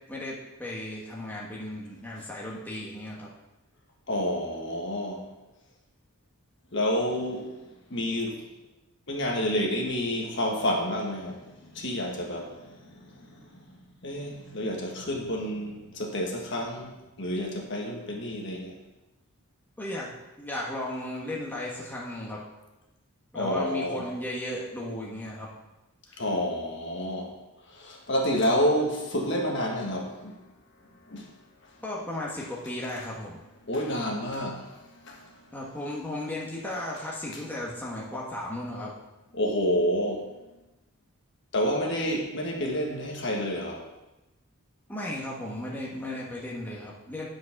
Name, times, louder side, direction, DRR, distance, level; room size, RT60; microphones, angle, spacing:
voice 1, 0.1-3.3 19.8-20.1 20.4-22.4 23.3-25.5 26.1-26.2 31.8-33.4 35.5-38.9 44.9-47.3, left 1 dB, 10° left, -5 dB, 1.3 m, -35 dB
voice 2, 4.1-5.2 6.7-7.6 7.9-8.4 9.1-13.5 14.0-16.9 17.2-18.8 23.3-24.0 26.2-27.3 27.7-30.4 31.1-31.3 33.7-35.3 39.3-40.3 41.5-43.8, equal, 55° left, 0 dB, 1.5 m, -29 dB
9.2 x 5.1 x 5.9 m, 1.0 s
head